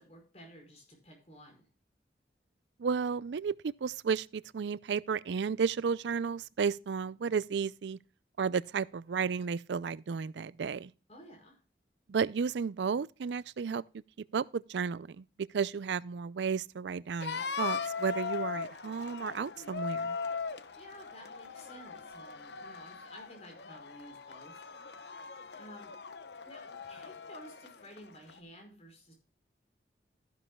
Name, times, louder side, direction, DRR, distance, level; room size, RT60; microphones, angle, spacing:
voice 1, 0.0-1.6 11.1-11.6 20.7-24.5 25.6-25.9 26.4-29.1, equal, 35° left, 4.8 m, -53 dB
voice 2, 2.8-8.0 8.4-10.9 12.1-13.8 14.3-20.2, right 6 dB, 80° right, 0.4 m, -33 dB
sound 1, 17.2-28.4, left 5 dB, 75° left, 0.8 m, -40 dB
13.0 x 11.0 x 2.2 m
head